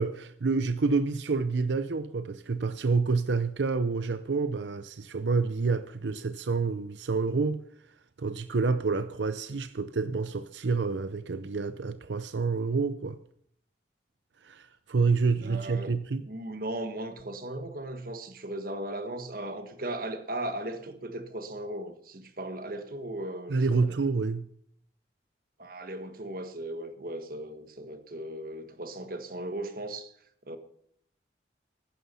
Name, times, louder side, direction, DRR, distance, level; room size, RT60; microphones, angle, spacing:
voice 1, 0.0-13.2 14.4-16.3 23.5-24.5, right 4 dB, 90° right, 0.6 m, -28 dB
voice 2, 15.4-15.9 16.3-23.9 25.6-30.1 30.5-30.6, right 1 dB, 55° right, 1.6 m, -37 dB
15.5 x 11.5 x 5.7 m
head